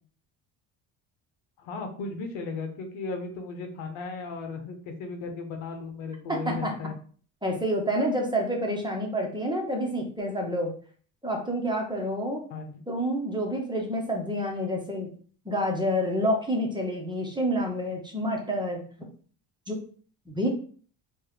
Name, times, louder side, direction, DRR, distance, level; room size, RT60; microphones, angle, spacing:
voice 1, 1.6-6.9 12.5-12.8, left 4 dB, 75° left, 5 dB, 1.0 m, -36 dB
voice 2, 6.3-6.7 7.4-10.7 11.2-12.4 12.9-15.1 15.4-18.8 19.7-19.8 20.3-20.5, equal, 10° right, 0 dB, 1.4 m, -28 dB
4.6 x 2.8 x 3.2 m, 0.44 s
supercardioid pair, 75°, 47 cm